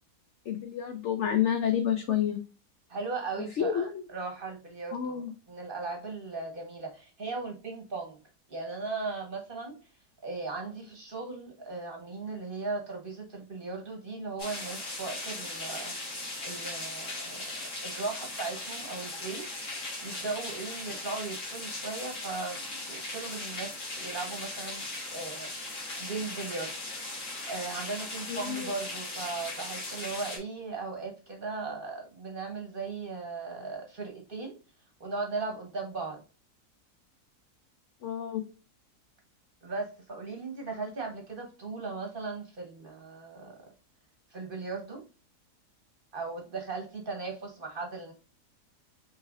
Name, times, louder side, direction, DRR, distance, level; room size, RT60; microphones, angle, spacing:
voice 1, 0.5-2.4 3.4-4.0 4.9-5.3 28.3-28.7 38.0-38.4, left 9 dB, 80° left, 7 dB, 0.6 m, -29 dB
voice 2, 2.9-8.2 8.5-9.7 10.2-15.9 16.4-17.4 17.8-19.4 20.0-24.8 25.1-25.5 26.0-26.7 27.5-34.6 35.0-36.2 39.6-43.5 44.3-45.0 46.1-48.1, right 3 dB, 40° right, 2 dB, 0.9 m, -37 dB
sound 1, 14.4-30.4, left 2 dB, 55° left, 1.8 m, -38 dB
5.4 x 3.2 x 2.4 m, 0.34 s
omnidirectional pair, 1.8 m